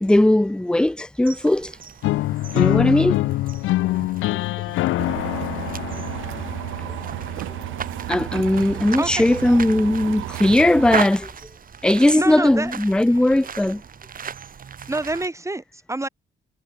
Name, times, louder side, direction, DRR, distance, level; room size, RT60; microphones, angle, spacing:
voice 1, 0.0-1.8 2.5-3.2 4.3-4.4 8.1-11.3 11.8-13.8, left 1 dB, 5° left, 0.5 m, -18 dB
sound 1, 1.2-15.3, right 7 dB, 45° right, 2.0 m, -36 dB
sound 2, 2.0-8.0, left 17 dB, 90° left, 0.9 m, -24 dB
sound 3, 5.0-11.0, right 16 dB, 80° right, 0.6 m, -32 dB
voice 2, 12.2-12.7 14.9-16.1, right 2 dB, 15° right, 6.2 m, -27 dB
cardioid pair, 90°, 20 cm